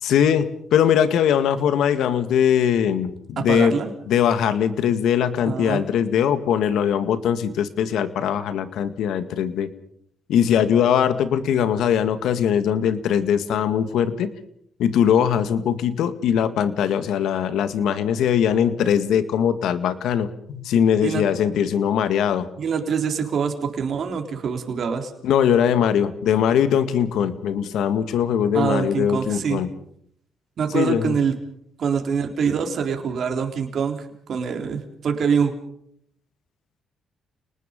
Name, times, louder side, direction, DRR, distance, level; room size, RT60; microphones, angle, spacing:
voice 1, 0.0-3.7 4.1-9.7 10.3-14.3 14.8-22.5 25.2-29.7 30.7-31.1, left 8 dB, 80° left, 11 dB, 1.9 m, -21 dB
voice 2, 3.4-3.9 5.4-5.8 21.0-21.2 22.6-25.1 28.5-29.6 30.6-31.3 31.8-34.0 34.3-35.5, right 6 dB, 60° right, 4 dB, 3.9 m, -24 dB
29.5 x 20.0 x 5.4 m, 0.69 s
cardioid pair, 90°, 0 cm